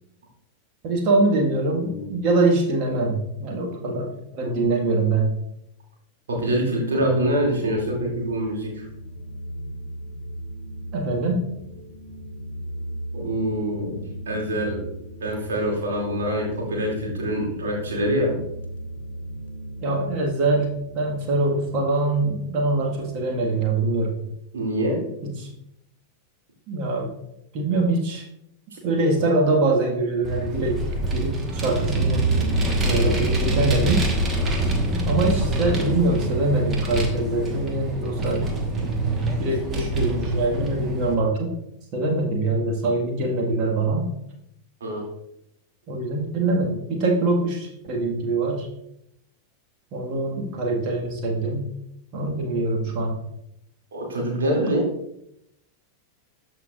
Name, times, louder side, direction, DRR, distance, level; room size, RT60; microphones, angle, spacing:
voice 1, 0.8-5.3 10.9-11.4 19.8-24.2 25.2-25.5 26.7-27.1 27.5-28.2 28.8-32.2 32.8-34.0 35.1-38.5 39.4-41.5 41.9-44.1 45.9-48.7 49.9-51.7 52.1-53.2, right 2 dB, 40° right, 1 dB, 1.6 m, -23 dB
voice 2, 6.3-8.8 13.1-14.9 15.2-18.4 24.5-25.0 32.3-32.8 44.8-45.1 53.9-54.9, equal, 65° right, -3 dB, 2.6 m, -25 dB
sound 1, 6.8-23.1, right 1 dB, 65° left, 0.9 m, -37 dB
Vehicle, 30.2-41.1, right 2 dB, 20° right, 1.3 m, -25 dB
13.5 x 4.5 x 2.5 m, 0.80 s
figure-of-eight pair, 90°, 0 cm